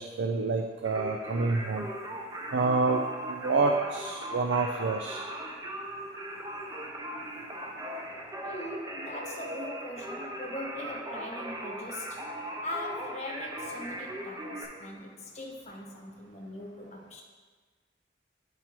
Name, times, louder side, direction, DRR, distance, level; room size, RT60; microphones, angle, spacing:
voice 1, 0.0-1.9 2.5-5.2, right 3 dB, 75° right, 4 dB, 0.4 m, -28 dB
Singing, 0.8-14.6, right 1 dB, 20° right, 0.5 m, -39 dB
voice 2, 8.4-17.2, left 1 dB, 40° left, 0 dB, 0.9 m, -41 dB
8.7 x 4.5 x 2.9 m, 1.5 s
head